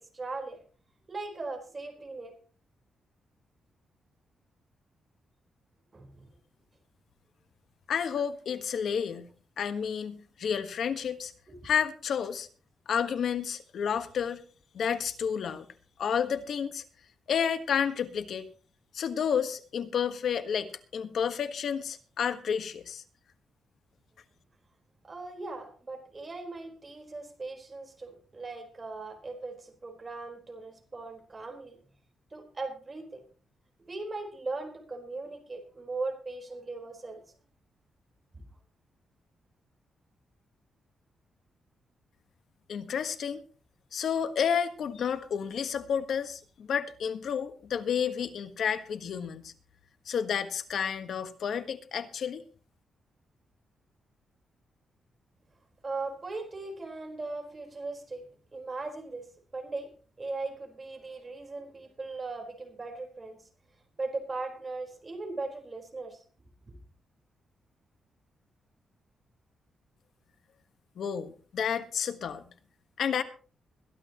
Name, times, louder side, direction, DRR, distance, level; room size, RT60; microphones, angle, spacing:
voice 1, 0.1-0.6 1.1-2.3 5.9-6.3 11.5-11.6 25.0-31.8 32.3-33.2 33.9-37.2 55.8-58.3 58.5-59.9 60.2-63.5 64.0-66.2, right 3 dB, 25° right, 4 dB, 4.4 m, -39 dB
voice 2, 7.9-9.3 9.6-11.3 11.6-12.5 12.9-14.4 14.7-15.7 16.0-16.8 17.3-18.5 18.9-23.0 42.7-43.4 43.9-49.5 50.1-52.4 71.0-72.4 73.0-73.2, left 7 dB, 65° left, 9 dB, 1.5 m, -30 dB
22.0 x 12.0 x 3.0 m, 0.39 s
cardioid pair, 115°, 0 cm